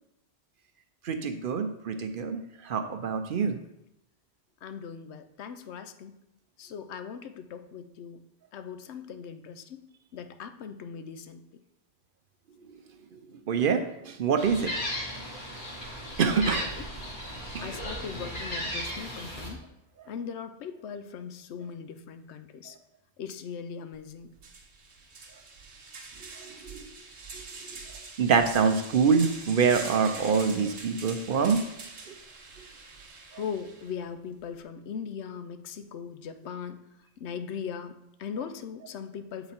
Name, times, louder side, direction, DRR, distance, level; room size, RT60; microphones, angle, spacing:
voice 1, 1.0-3.6 13.5-14.7 16.2-16.7 17.5-17.7 26.4-26.8 28.2-31.6, right 5 dB, 60° right, 7 dB, 0.7 m, -25 dB
voice 2, 4.6-6.1 6.6-8.2 8.5-9.8 10.1-11.4 16.6-16.9 17.6-19.6 20.1-22.8 23.2-24.3 33.3-36.8 37.2-39.5, left 7 dB, 80° left, 9 dB, 0.9 m, -39 dB
Gull seagull, 14.4-19.5, equal, 45° left, 1.9 m, -36 dB
sound 1, 23.9-24.0 24.4-33.9, right 4 dB, 75° right, 1.3 m, -44 dB
7.8 x 4.0 x 4.2 m, 0.85 s
omnidirectional pair, 1.1 m